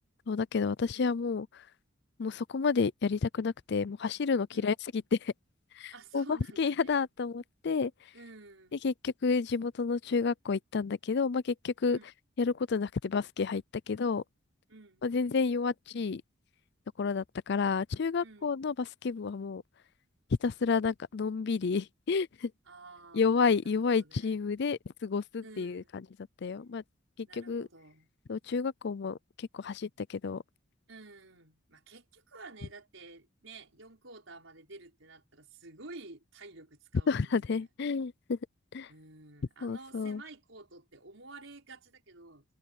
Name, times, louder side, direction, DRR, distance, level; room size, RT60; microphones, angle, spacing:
voice 1, 0.3-1.5 2.2-5.3 5.8-7.9 8.8-12.0 12.4-14.2 15.0-16.2 17.0-19.6 20.4-22.5 23.1-25.8 26.4-26.8 27.3-27.7 28.3-30.4 37.1-38.4 38.7-38.9 39.6-40.2, left 5 dB, 60° left, 0.5 m, -30 dB
voice 2, 5.9-7.0 8.1-8.8 11.9-12.1 14.7-15.1 18.2-18.5 22.7-24.4 25.4-25.9 27.3-28.1 30.9-37.6 38.9-42.4, right 3 dB, 85° right, 5.0 m, -51 dB
head